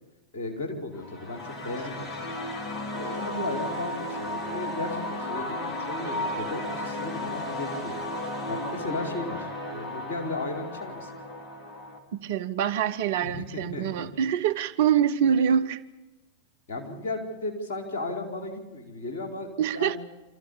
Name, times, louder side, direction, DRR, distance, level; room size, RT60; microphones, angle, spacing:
voice 1, 0.3-2.4 2.9-8.0 8.5-11.1 13.2-14.1 16.7-20.0, left 2 dB, 55° left, 4.6 m, -35 dB
sound 1, 0.9-12.0, left 1 dB, 20° left, 3.6 m, -34 dB
voice 2, 12.2-15.8 19.6-20.0, right 8 dB, 55° right, 0.8 m, -25 dB
25.5 x 14.5 x 8.6 m
figure-of-eight pair, 90°, 0 cm